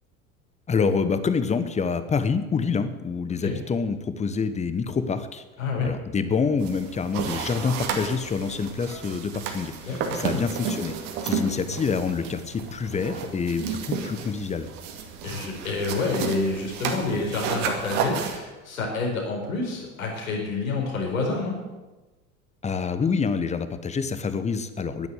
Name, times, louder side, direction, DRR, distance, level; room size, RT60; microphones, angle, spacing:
voice 1, 0.7-5.4 5.8-11.0 11.2-14.7 22.6-25.1, left 5 dB, 15° left, 11 dB, 1.1 m, -27 dB
voice 2, 5.6-5.9 9.8-10.4 15.2-21.6, left 3 dB, 70° left, -1 dB, 4.6 m, -28 dB
sound 1, 6.6-18.4, right 6 dB, 50° right, 2.2 m, -32 dB
11.0 x 10.5 x 9.3 m, 1.2 s
figure-of-eight pair, 75°, 42 cm